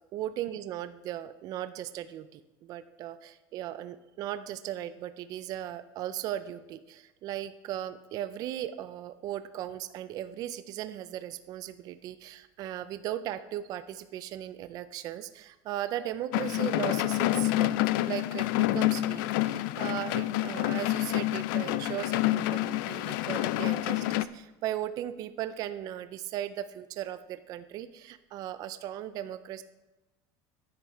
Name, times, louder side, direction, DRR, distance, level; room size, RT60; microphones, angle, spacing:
voice 1, 0.1-29.6, right 12 dB, 35° right, 12 dB, 0.4 m, -37 dB
sound 1, 16.3-24.2, left 16 dB, 85° left, 0.4 m, -28 dB
10.0 x 7.7 x 4.5 m, 1.1 s
cardioid pair, 170°, 11 cm